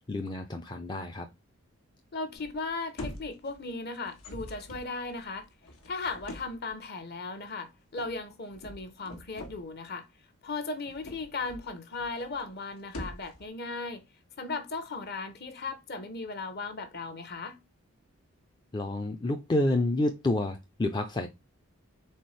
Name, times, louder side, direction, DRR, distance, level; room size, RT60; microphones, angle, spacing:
voice 1, 0.1-1.3 18.7-21.3, left 1 dB, 20° left, 0.4 m, -29 dB
voice 2, 2.1-5.5 5.9-10.1 10.4-14.0 14.4-17.6, left 3 dB, 45° left, 0.8 m, -37 dB
sound 1, 2.3-2.7 3.0-3.7 4.1-6.7 8.0-8.2 8.5-9.6 10.7-11.7 12.0-12.5 12.8-13.5, left 1 dB, 90° left, 1.4 m, -44 dB
4.3 x 3.7 x 3.1 m
head